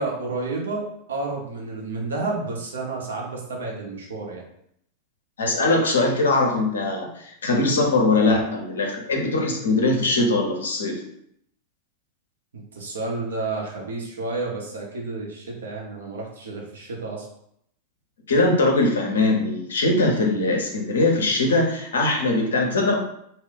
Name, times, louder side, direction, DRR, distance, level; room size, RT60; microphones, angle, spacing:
voice 1, 0.0-4.4 12.7-17.3, right 3 dB, 65° right, -1 dB, 0.7 m, -30 dB
voice 2, 5.4-11.0 18.3-22.9, left 2 dB, 65° left, 1 dB, 0.6 m, -21 dB
2.3 x 2.1 x 3.7 m, 0.72 s
figure-of-eight pair, 90°, 0 cm